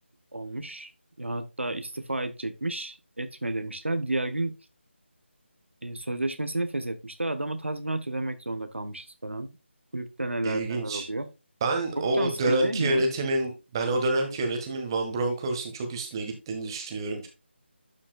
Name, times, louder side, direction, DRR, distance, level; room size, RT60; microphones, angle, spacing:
voice 1, 0.3-0.9 1.2-4.5 5.8-9.5 9.9-11.3 12.0-13.0, right 2 dB, 75° right, 10 dB, 1.3 m, -31 dB
voice 2, 10.4-11.1 11.6-17.3, right 2 dB, 20° right, 4 dB, 1.6 m, -28 dB
12.0 x 5.5 x 2.3 m, 0.27 s
figure-of-eight pair, 160°, 7 cm